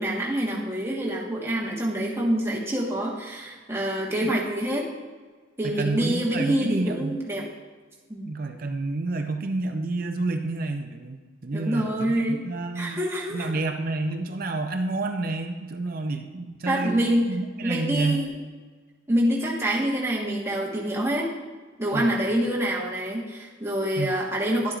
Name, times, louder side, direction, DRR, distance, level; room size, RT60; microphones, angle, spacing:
voice 1, 0.0-4.9 5.6-7.5 8.1-8.3 11.5-12.4 12.7-13.5 16.7-17.3 17.6-18.3 19.1-21.3 21.8-24.7, right 1 dB, 15° right, -4 dB, 1.3 m, -26 dB
voice 2, 5.6-7.2 8.2-13.0 13.3-18.2 21.9-22.2 23.9-24.1, right 2 dB, 45° right, 5 dB, 0.5 m, -29 dB
11.5 x 7.8 x 2.4 m, 1.5 s
head